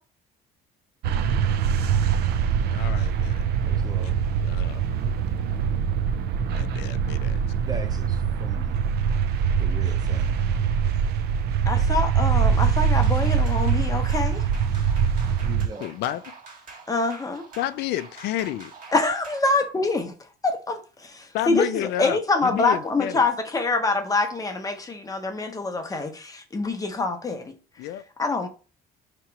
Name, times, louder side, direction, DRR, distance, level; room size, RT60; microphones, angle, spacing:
sound 1, 1.0-15.7, right 7 dB, 75° right, 0.5 m, -23 dB
voice 1, 2.7-3.4 4.5-4.8 6.5-7.4 15.8-16.2 17.6-18.7 21.3-23.3 27.8-28.0, left 12 dB, 80° left, 0.4 m, -30 dB
voice 2, 3.6-4.2 7.6-8.8 9.6-10.4 15.4-15.9, right 4 dB, 25° right, 0.7 m, -39 dB
voice 3, 11.7-14.5 16.9-17.4 18.9-20.1 20.4-27.6 28.2-28.5, left 3 dB, 20° left, 0.7 m, -25 dB
sound 2, 12.8-19.7, right 4 dB, 50° right, 1.5 m, -46 dB
3.0 x 2.9 x 4.5 m
cardioid pair, 110°, 17 cm